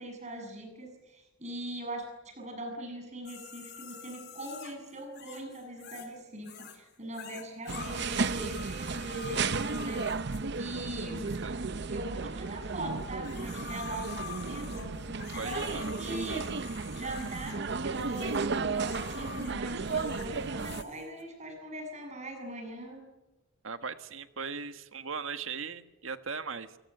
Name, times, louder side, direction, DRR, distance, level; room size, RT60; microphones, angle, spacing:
voice 1, 0.0-10.0 10.5-11.3 11.9-16.4 16.9-23.0, right 1 dB, 35° right, 4 dB, 7.5 m, -41 dB
sound 1, 3.3-6.2 6.4-6.8 7.1-10.4 11.3-11.4 13.0-21.2, left 7 dB, 55° left, 3.7 m, -47 dB
sound 2, 7.7-20.8, right 4 dB, 55° right, 0.8 m, -34 dB
voice 2, 15.4-15.9 23.6-26.8, right 5 dB, 85° right, 9 dB, 1.6 m, -38 dB
29.5 x 18.0 x 9.2 m, 1.1 s
head